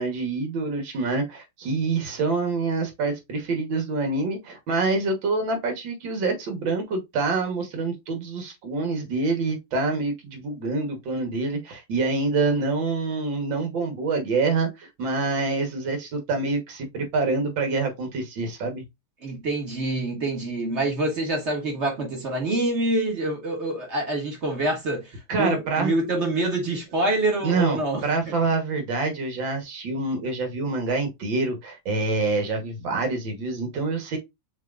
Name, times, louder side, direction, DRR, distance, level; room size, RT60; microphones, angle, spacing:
voice 1, 0.0-18.8 25.3-25.9 27.4-34.2, right 3 dB, 65° right, 1.9 m, -26 dB
voice 2, 19.2-28.0, right 2 dB, 35° right, 1.5 m, -26 dB
6.4 x 2.9 x 2.4 m
omnidirectional pair, 2.3 m